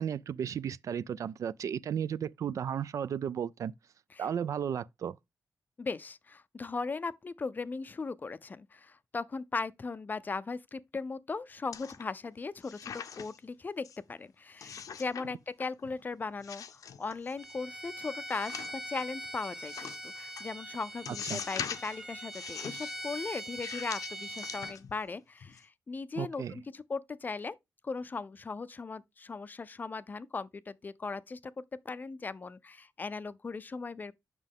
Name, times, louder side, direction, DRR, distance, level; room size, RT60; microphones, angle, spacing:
voice 1, 0.0-3.7 4.2-5.2 21.1-21.4 26.2-26.6, right 8 dB, 65° right, 0.3 m, -34 dB
voice 2, 5.8-18.5 18.9-27.6 27.8-31.4 31.9-34.1, left 4 dB, 30° left, 0.4 m, -38 dB
sound 1, 11.7-12.3 12.6-13.4 13.8-14.0 14.6-15.3 15.6-16.0 16.4-17.5 18.3-19.0 19.7-20.0 20.4-20.5 21.1-22.0 22.3-23.0 23.6-25.1 25.4-25.6, left 7 dB, 75° left, 0.7 m, -42 dB
Bowed string instrument, 17.4-24.8, equal, 10° right, 0.9 m, -42 dB
7.5 x 6.0 x 3.5 m
wide cardioid pair, 130°, 6 cm